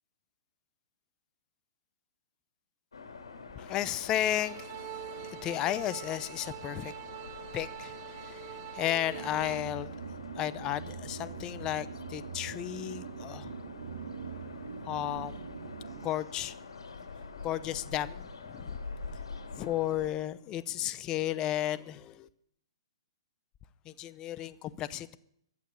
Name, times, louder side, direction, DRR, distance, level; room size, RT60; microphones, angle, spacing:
sound 1, 2.9-20.1, left 4 dB, 85° left, 3.5 m, -46 dB
voice 1, 3.6-6.9 7.5-9.9 10.4-13.5 14.8-15.4 16.0-16.6 17.4-18.8 19.5-22.3 23.9-25.2, left 12 dB, 25° left, 0.7 m, -34 dB
sound 2, 4.3-9.6, right 15 dB, 40° right, 1.4 m, -44 dB
sound 3, 9.1-16.1, right 7 dB, 75° right, 1.8 m, -43 dB
15.5 x 11.5 x 6.7 m
hypercardioid pair, 135°, 3 cm